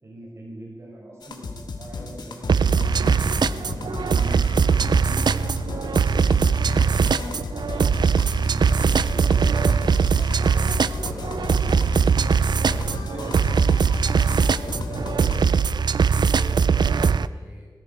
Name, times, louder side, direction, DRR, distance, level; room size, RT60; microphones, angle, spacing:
voice 1, 0.0-3.2 3.6-5.4 6.1-7.2 8.3-9.4, right 1 dB, 40° right, -3 dB, 6.4 m, -42 dB
sound 1, 1.2-15.4, left 3 dB, 80° left, 2.0 m, -33 dB
sound 2, 2.5-17.3, right 6 dB, 80° right, 0.5 m, -21 dB
voice 2, 8.9-10.2 10.5-13.7 14.5-15.9 16.3-17.7, right 1 dB, 15° right, -4 dB, 5.3 m, -44 dB
19.0 x 16.0 x 4.8 m, 1.5 s
wide cardioid pair, 100°, 7 cm